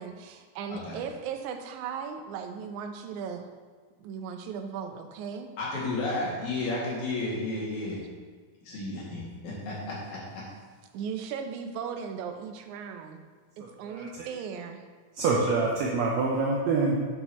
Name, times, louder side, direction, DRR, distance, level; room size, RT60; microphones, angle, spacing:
voice 1, 0.0-3.5 4.0-5.5 10.9-13.2 13.6-14.8, right 6 dB, 90° right, 6 dB, 2.1 m, -37 dB
voice 2, 5.6-8.1 8.6-10.2, left 2 dB, 85° left, -7 dB, 3.7 m, -32 dB
voice 3, 15.2-17.0, right 3 dB, 70° right, -3 dB, 1.9 m, -25 dB
8.2 x 7.8 x 3.0 m, 1.5 s
omnidirectional pair, 3.3 m